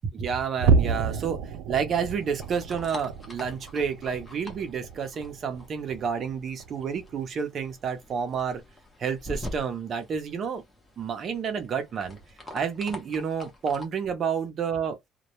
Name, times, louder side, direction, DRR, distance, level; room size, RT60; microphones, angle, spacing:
voice 1, 0.1-1.4 1.7-8.6 9.0-10.6 11.0-12.2 12.5-15.0, right 6 dB, 35° right, 0.6 m, -30 dB
sound 1, 0.6-7.2 7.6-7.9 8.3-8.5 9.0-9.1, right 5 dB, 85° right, 0.4 m, -30 dB
sound 2, 1.9-13.9, left 1 dB, 15° left, 0.7 m, -45 dB
2.2 x 2.0 x 2.9 m
cardioid pair, 170°, 0 cm